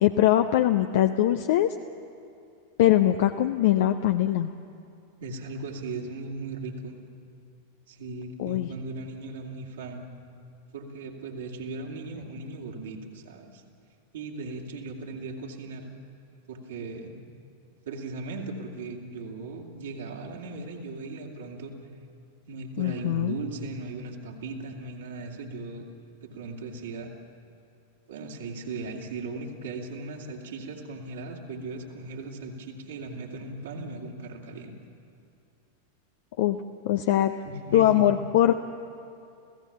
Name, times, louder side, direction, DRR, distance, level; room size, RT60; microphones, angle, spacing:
voice 1, 0.0-1.8 2.8-4.5 8.4-8.7 22.8-23.4 36.4-36.6 36.8-37.3 37.7-38.5, left 12 dB, 55° left, 8 dB, 0.6 m, -22 dB
voice 2, 5.2-6.9 7.9-10.1 10.7-13.6 14.1-15.9 16.5-17.2 17.9-21.7 22.5-25.9 26.2-27.1 28.1-34.7 37.4-37.9, right 3 dB, 60° right, 0 dB, 2.6 m, -37 dB
29.0 x 16.5 x 7.3 m, 2.6 s
figure-of-eight pair, 90°, 0 cm